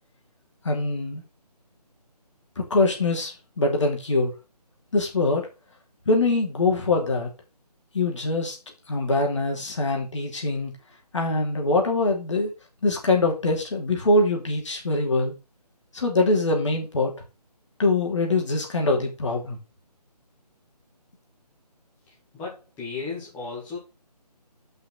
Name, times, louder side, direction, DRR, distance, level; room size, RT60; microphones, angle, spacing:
voice 1, 0.6-1.2 2.6-4.3 4.9-5.5 6.1-7.3 7.9-8.6 8.9-10.7 11.1-12.5 12.8-15.3 15.9-17.1 17.8-19.6, left 2 dB, 45° left, 1 dB, 2.8 m, -23 dB
voice 2, 22.3-23.8, left 4 dB, 10° left, -6 dB, 1.9 m, -34 dB
6.6 x 5.7 x 6.1 m, 0.28 s
figure-of-eight pair, 155°, 21 cm